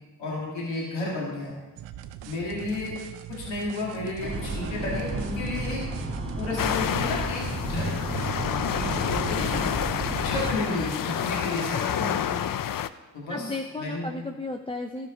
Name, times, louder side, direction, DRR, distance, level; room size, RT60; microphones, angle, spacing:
voice 1, 0.2-1.6 2.2-3.0 3.3-5.8 6.3-7.9 8.4-9.7 10.2-11.9 13.1-13.5 13.8-14.1, left 2 dB, 85° left, -4 dB, 2.5 m, -32 dB
sound 1, 1.8-10.9, right 11 dB, 85° right, 0.6 m, -42 dB
sound 2, 4.2-10.6, right 2 dB, 30° right, 2.0 m, -32 dB
sound 3, 6.6-12.9, left 10 dB, 50° left, 0.5 m, -29 dB
voice 2, 12.0-12.5 13.3-15.1, left 2 dB, 10° left, 4 dB, 0.7 m, -34 dB
12.5 x 5.3 x 5.1 m, 1.2 s
supercardioid pair, 40°, 43 cm